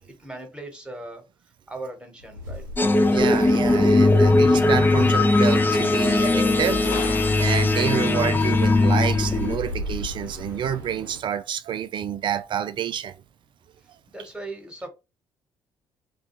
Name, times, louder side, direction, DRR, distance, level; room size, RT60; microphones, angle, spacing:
voice 1, 0.0-1.2 1.7-2.6 14.1-14.9, right 2 dB, 10° right, 1.2 m, -38 dB
sound 1, 2.2-11.2, left 1 dB, 90° right, 0.6 m, -38 dB
sound 2, 2.8-9.6, left 2 dB, 20° left, 0.4 m, -19 dB
voice 2, 3.1-13.1, right 9 dB, 50° right, 0.4 m, -28 dB
Gunshot gunfire, 6.8-8.0, left 6 dB, 80° left, 0.5 m, -35 dB
2.3 x 2.2 x 2.9 m
hypercardioid pair, 50°, 11 cm